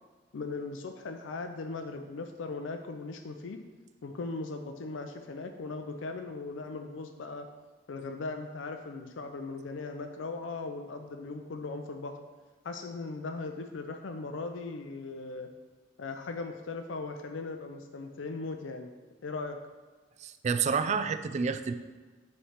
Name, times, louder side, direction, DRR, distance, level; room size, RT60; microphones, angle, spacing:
voice 1, 0.3-3.6 4.0-7.5 7.9-12.1 12.6-15.5 16.0-18.9 19.2-19.6, left 3 dB, 80° left, 5 dB, 0.4 m, -38 dB
voice 2, 20.2-21.7, right 5 dB, 40° right, 9 dB, 0.3 m, -29 dB
5.6 x 3.3 x 5.7 m, 1.4 s
head